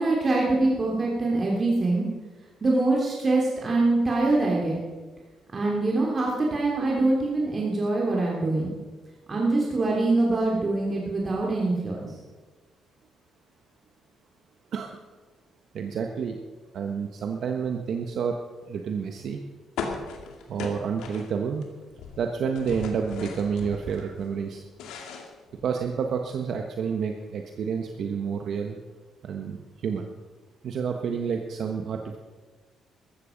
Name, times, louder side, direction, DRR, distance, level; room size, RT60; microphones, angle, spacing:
voice 1, 0.0-2.0 2.6-4.8 5.5-8.7 9.3-12.1, right 2 dB, 35° right, -3 dB, 3.2 m, -24 dB
voice 2, 15.7-16.4 16.7-18.3 18.7-19.4 20.5-21.6 22.2-24.6 25.6-28.8 29.2-30.1 30.6-32.2, right 6 dB, 65° right, 4 dB, 1.1 m, -29 dB
sound 1, 19.8-21.6 21.9-24.1 24.5-26.0, left 5 dB, 90° left, 2.2 m, -37 dB
14.5 x 14.0 x 5.2 m, 1.3 s
cardioid pair, 90°, 0 cm